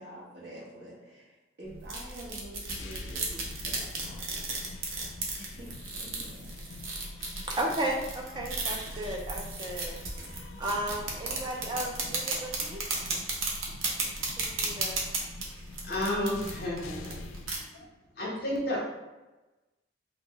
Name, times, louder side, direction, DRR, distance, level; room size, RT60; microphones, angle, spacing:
voice 1, 0.0-4.3 5.4-6.8, right 1 dB, 60° right, -6 dB, 1.1 m, -47 dB
sound 1, 1.6-17.6, right 3 dB, 85° right, 0.6 m, -35 dB
sound 2, 2.7-17.7, left 4 dB, 90° left, 0.3 m, -48 dB
voice 2, 7.5-10.0 10.3-12.8 14.4-15.1, right 1 dB, 25° right, -1 dB, 0.4 m, -34 dB
voice 3, 15.8-17.2 17.5-17.8 18.2-18.8, left 1 dB, 55° left, -3 dB, 0.7 m, -31 dB
2.4 x 2.1 x 3.7 m, 1.1 s
head